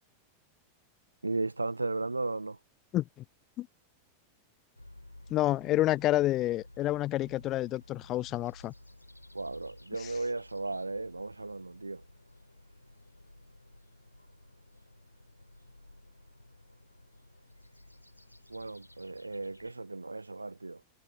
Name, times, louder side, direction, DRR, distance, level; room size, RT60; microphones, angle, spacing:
voice 1, 1.2-2.6 9.3-12.0 18.5-20.8, right 3 dB, 80° right, 1.3 m, -35 dB
voice 2, 2.9-3.2 3.6-3.7 5.3-8.7 10.0-10.1, left 15 dB, 35° left, 0.4 m, -29 dB
sound 1, 4.7-19.7, left 1 dB, 85° left, 6.5 m, -54 dB
figure-of-eight pair, 90°, 0 cm